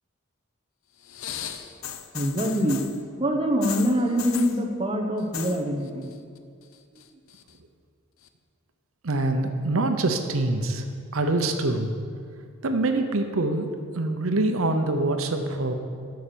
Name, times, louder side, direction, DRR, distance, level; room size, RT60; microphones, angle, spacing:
sound 1, 1.0-3.0 3.6-4.6 5.2-5.6 5.9-6.4 6.7-7.5 8.3-8.4, left 9 dB, 80° left, 0.6 m, -36 dB
voice 1, 2.1-2.9 3.2-6.1 6.9-7.0, equal, 25° right, 2 dB, 1.0 m, -24 dB
voice 2, 9.0-10.9 11.1-11.9 12.6-15.7, right 2 dB, 85° right, 6 dB, 0.8 m, -25 dB
12.0 x 5.9 x 6.9 m, 2.2 s
head